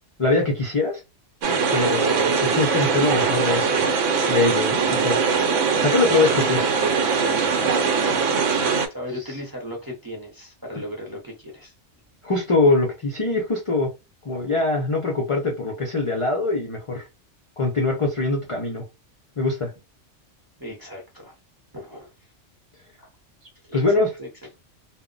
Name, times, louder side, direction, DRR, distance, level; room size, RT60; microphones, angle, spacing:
voice 1, 0.2-1.0 1.7-3.8 4.3-5.3 5.8-6.7 12.2-13.9 14.2-17.1 17.6-18.8 19.4-19.7 23.7-24.1, left 3 dB, 45° left, 0.4 m, -23 dB
sound 1, 1.4-8.9, right 5 dB, 85° right, 1.0 m, -21 dB
voice 2, 7.2-8.0 8.9-11.7 20.6-21.4 21.7-22.1 23.0-23.1 23.6-24.3, left 1 dB, 25° right, 0.5 m, -37 dB
2.1 x 2.0 x 3.7 m
omnidirectional pair, 1.3 m